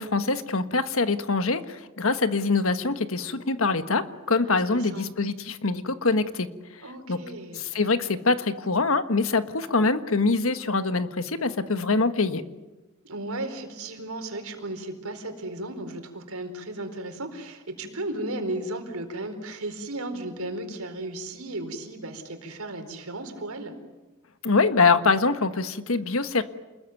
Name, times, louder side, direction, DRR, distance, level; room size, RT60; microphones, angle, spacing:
voice 1, 0.0-6.5 7.1-7.2 7.5-12.4 24.4-26.4, left 3 dB, 70° left, 10 dB, 1.4 m, -24 dB
voice 2, 4.4-5.1 6.8-7.6 13.0-23.7, right 1 dB, 85° right, 6 dB, 4.4 m, -35 dB
28.5 x 21.0 x 9.3 m, 1.1 s
head